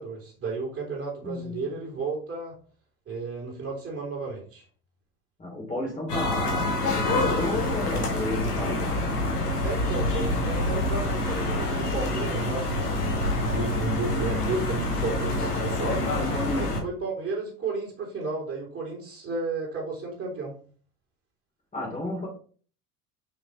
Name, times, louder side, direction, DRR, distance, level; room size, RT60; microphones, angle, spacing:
voice 1, 0.0-2.5 3.1-4.6 9.6-16.0 16.5-20.5, right 3 dB, 30° right, -2 dB, 3.4 m, -33 dB
voice 2, 1.2-1.6 5.4-9.2 16.2-16.8 21.7-22.3, left 1 dB, 15° left, -2 dB, 2.7 m, -32 dB
sound 1, 6.1-16.8, left 1 dB, 75° left, 1.8 m, -27 dB
6.0 x 5.7 x 3.3 m, 0.43 s
figure-of-eight pair, 70°, 47 cm